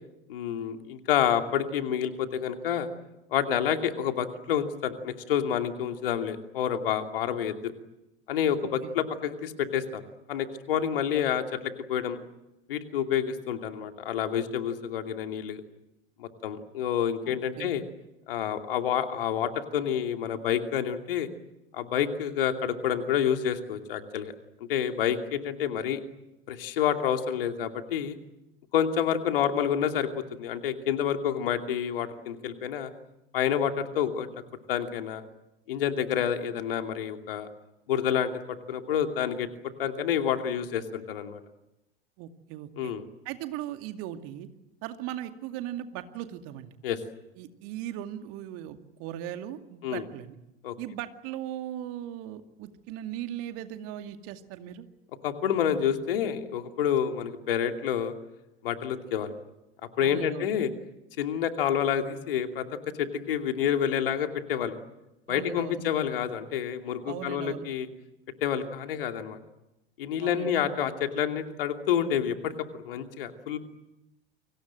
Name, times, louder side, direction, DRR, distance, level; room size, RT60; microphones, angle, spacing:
voice 1, 0.3-2.9 3.3-7.7 8.3-10.0 10.3-12.2 12.7-15.6 16.2-17.8 18.3-21.3 21.7-24.3 24.6-26.0 26.5-28.2 28.7-32.9 33.3-34.3 34.7-35.2 35.7-37.5 37.9-39.5 39.8-41.4 42.8-43.0 46.8-47.0 49.8-50.0 50.6-50.7 55.2-58.1 58.6-59.3 60.0-60.7 61.2-62.7 63.0-64.7 65.3-67.9 68.4-69.4 70.0-73.6, left 9 dB, 65° left, 6 dB, 2.7 m, -28 dB
voice 2, 8.6-8.9 17.2-17.8 42.2-42.9 43.2-44.5 44.8-46.7 47.4-50.4 50.8-54.9 60.0-60.5 65.3-65.8 67.0-67.7 70.2-70.5, right 12 dB, 50° right, 7 dB, 2.4 m, -38 dB
29.5 x 25.0 x 7.7 m, 0.93 s
figure-of-eight pair, 75°, 30 cm